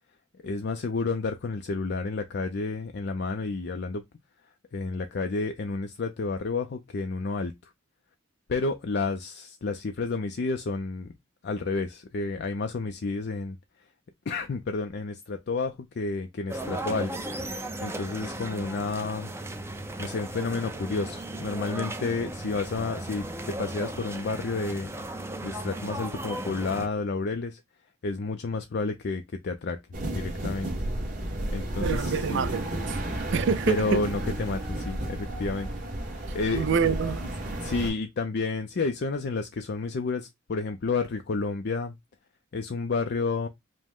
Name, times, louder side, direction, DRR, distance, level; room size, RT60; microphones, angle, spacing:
voice 1, 0.4-4.0 4.7-7.7 8.5-11.1 11.4-13.6 14.3-19.3 20.0-24.9 25.4-27.6 28.0-29.8 30.1-30.7 31.5-32.5 33.7-35.7 36.1-36.7 37.6-41.9 42.5-43.5, left 3 dB, 55° left, 0.5 m, -30 dB
sound 1, 16.5-26.9, right 1 dB, 15° right, 0.6 m, -36 dB
sound 2, 29.9-37.9, right 1 dB, 40° right, 1.4 m, -32 dB
voice 2, 31.8-33.0 33.3-34.0 36.5-37.2, right 5 dB, 60° right, 0.4 m, -26 dB
5.1 x 2.1 x 3.6 m
head